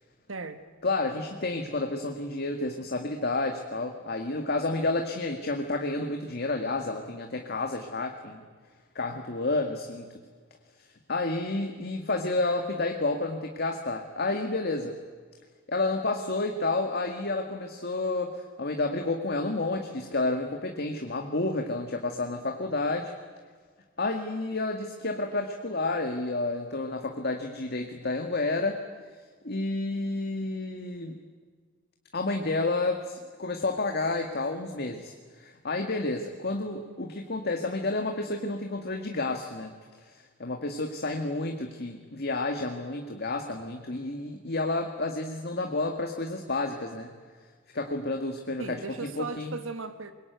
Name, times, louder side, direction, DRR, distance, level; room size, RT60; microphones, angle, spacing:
voice 1, 0.3-0.6 48.6-50.1, right 3 dB, 85° right, 9 dB, 1.5 m, -37 dB
voice 2, 0.8-8.4 9.0-10.1 10.8-15.0 15.7-23.1 24.0-28.8 29.4-31.2 32.1-39.7 40.0-47.1 47.7-49.6, left 2 dB, 55° left, 4 dB, 1.9 m, -30 dB
25.0 x 22.5 x 9.3 m, 1.5 s
head